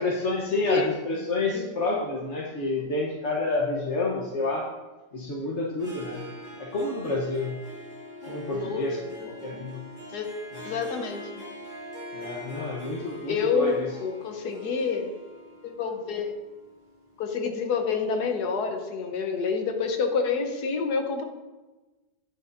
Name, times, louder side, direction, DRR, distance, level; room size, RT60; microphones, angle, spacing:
voice 1, 0.0-4.7 5.1-6.2 6.6-7.6 8.3-9.0 9.3-9.8 10.5-10.7 12.1-13.9, left 2 dB, 45° left, -3 dB, 1.2 m, -29 dB
Harp, 5.7-17.6, left 1 dB, 25° left, 2.0 m, -43 dB
voice 2, 8.5-8.9 9.2-9.6 10.1-10.3 10.6-11.4 13.3-13.7 14.0-15.1 15.6-16.3 17.2-21.2, left 5 dB, 65° left, 4 dB, 1.5 m, -28 dB
10.5 x 9.6 x 2.6 m, 1.2 s
omnidirectional pair, 1.9 m